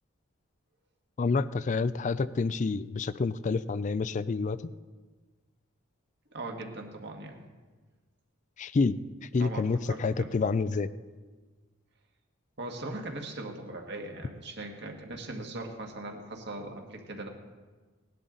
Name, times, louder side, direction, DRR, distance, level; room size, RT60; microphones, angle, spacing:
voice 1, 1.2-4.7 8.6-9.0 9.3-10.9, left 4 dB, 35° left, 15 dB, 0.3 m, -28 dB
voice 2, 6.3-7.4 9.4-10.3 12.6-17.3, right 2 dB, 55° right, 2 dB, 1.7 m, -40 dB
18.5 x 11.0 x 3.9 m, 1.4 s
head